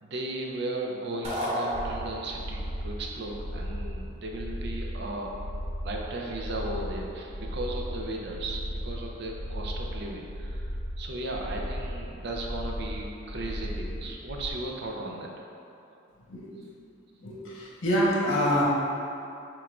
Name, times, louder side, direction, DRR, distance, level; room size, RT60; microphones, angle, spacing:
voice 1, 0.0-5.3 5.8-10.7 11.0-15.3, right 2 dB, 60° right, 0 dB, 0.5 m, -36 dB
sound 1, 1.2-2.5, equal, 35° right, 1.0 m, -31 dB
sound 2, 1.7-14.5, equal, 50° left, 0.6 m, -36 dB
voice 2, 16.3-16.6 17.2-18.6, equal, 85° left, -6 dB, 1.1 m, -26 dB
5.9 x 3.5 x 2.4 m, 2.7 s
head